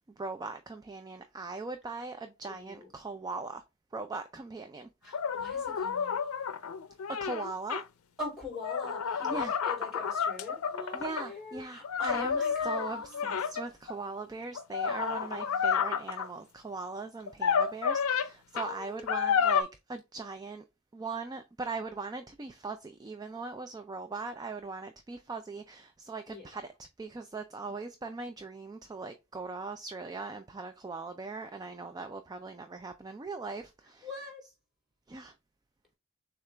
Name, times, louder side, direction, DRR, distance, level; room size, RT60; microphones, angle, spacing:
voice 1, 0.2-3.6 3.9-4.9 7.1-7.8 9.2-9.5 10.9-20.6 20.9-34.1 35.1-35.3, right 3 dB, 20° right, 0.4 m, -40 dB
voice 2, 2.5-2.9 5.0-6.4 8.2-13.4 14.8-15.9 18.5-19.2 26.3-26.5 34.0-34.4, left 2 dB, ahead, 3.1 m, -43 dB
sound 1, 5.1-7.8 8.5-11.3 11.8-13.9 14.5-16.3 17.3-18.3 18.6-18.7 19.1-19.6, left 6 dB, 85° left, 0.5 m, -30 dB
6.6 x 2.4 x 3.3 m
head